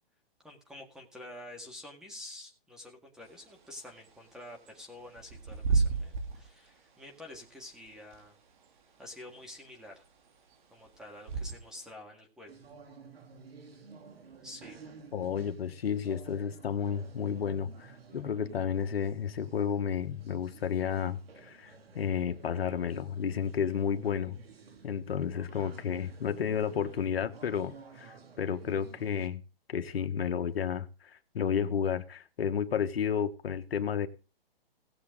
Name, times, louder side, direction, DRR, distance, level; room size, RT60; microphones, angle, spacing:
voice 1, 0.4-8.4 9.0-10.0 10.7-12.5 14.4-14.8, left 1 dB, ahead, 1.8 m, -48 dB
Bird / Wind, 3.2-11.9, right 4 dB, 50° right, 2.6 m, -35 dB
sound 1, 12.5-29.3, right 5 dB, 75° right, 2.5 m, -53 dB
voice 2, 15.1-24.4 24.8-29.4 29.7-34.1, left 7 dB, 75° left, 1.3 m, -32 dB
18.0 x 7.3 x 3.7 m
hypercardioid pair, 150°, 30 cm